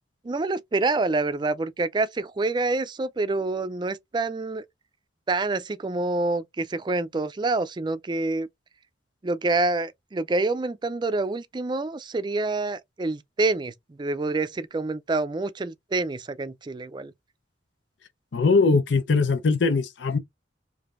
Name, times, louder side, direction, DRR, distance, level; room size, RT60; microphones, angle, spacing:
voice 1, 0.2-4.6 5.3-8.5 9.2-13.7 14.0-17.1, right 3 dB, 25° right, 0.4 m, -27 dB
voice 2, 18.3-20.2, left 4 dB, 90° left, 0.6 m, -21 dB
4.9 x 2.6 x 2.4 m
head